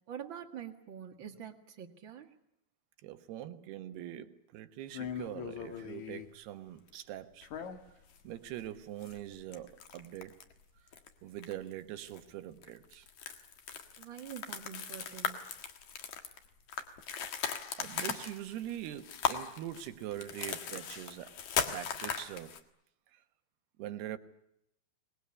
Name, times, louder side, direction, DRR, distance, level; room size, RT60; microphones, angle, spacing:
voice 1, 0.1-2.3 14.0-15.4, right 9 dB, 45° right, 1.6 m, -45 dB
voice 2, 3.0-7.5 8.2-10.3 11.2-13.1 17.8-22.6 23.1-23.2 23.8-24.2, right 12 dB, 80° right, 3.2 m, -43 dB
sound 1, 4.9-6.3 7.4-8.2 8.5-8.6 9.0-10.5 10.9-11.1 11.4-11.7 12.1-12.2 12.6-22.6, left 7 dB, 55° left, 2.7 m, -38 dB
24.5 x 20.5 x 9.8 m
omnidirectional pair, 4.6 m